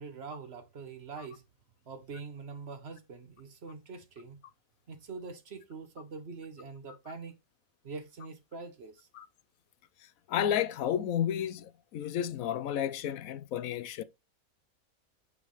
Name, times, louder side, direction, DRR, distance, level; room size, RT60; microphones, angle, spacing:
voice 1, 0.0-1.4 1.9-4.4 4.9-7.4 7.8-9.1, right 4 dB, 50° right, 1.1 m, -44 dB
voice 2, 10.3-14.0, left 10 dB, 80° left, 1.0 m, -31 dB
7.5 x 6.3 x 3.1 m
omnidirectional pair, 1.5 m